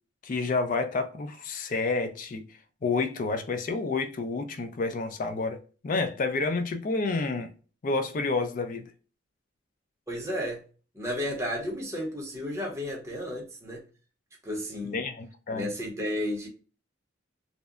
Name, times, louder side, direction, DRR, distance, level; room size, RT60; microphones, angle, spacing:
voice 1, 0.2-2.5 2.8-7.5 7.8-8.9 14.9-15.7, left 3 dB, 40° left, 0.3 m, -29 dB
voice 2, 10.1-10.6 10.9-13.8 14.4-15.0 15.5-16.5, equal, 15° right, 0.7 m, -33 dB
2.7 x 2.1 x 2.3 m
head